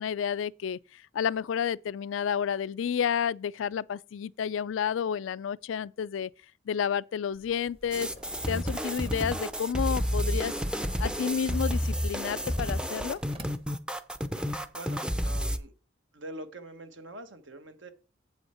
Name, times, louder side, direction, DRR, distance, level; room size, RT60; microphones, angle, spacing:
voice 1, 0.0-6.3 6.7-8.1 8.5-10.5 11.0-13.2, left 7 dB, 85° left, 0.4 m, -30 dB
sound 1, 7.3-13.7, right 1 dB, 30° right, 1.1 m, -49 dB
sound 2, 7.9-15.6, equal, 5° right, 0.5 m, -30 dB
voice 2, 14.7-15.7 16.1-17.9, right 1 dB, 75° right, 1.3 m, -44 dB
8.1 x 7.9 x 4.3 m
head